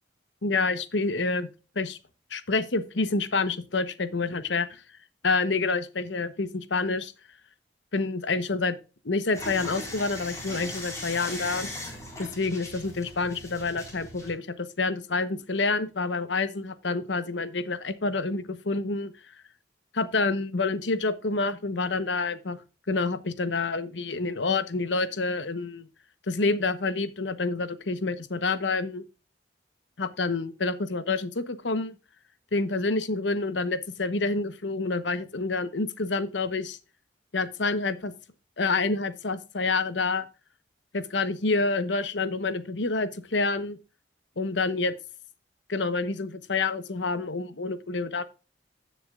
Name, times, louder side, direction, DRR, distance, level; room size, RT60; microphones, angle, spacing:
voice 1, 0.4-1.5 1.7-2.0 2.3-4.8 5.2-7.1 7.9-8.7 9.0-11.7 12.2-19.1 19.9-22.6 22.9-25.9 26.3-29.0 30.0-32.0 32.5-36.8 37.3-38.1 38.6-40.3 40.9-43.8 44.4-44.9 45.7-48.2, left 3 dB, 80° left, 1.0 m, -28 dB
sound 1, 9.3-14.3, left 1 dB, 15° left, 4.4 m, -38 dB
16.0 x 6.8 x 2.4 m
head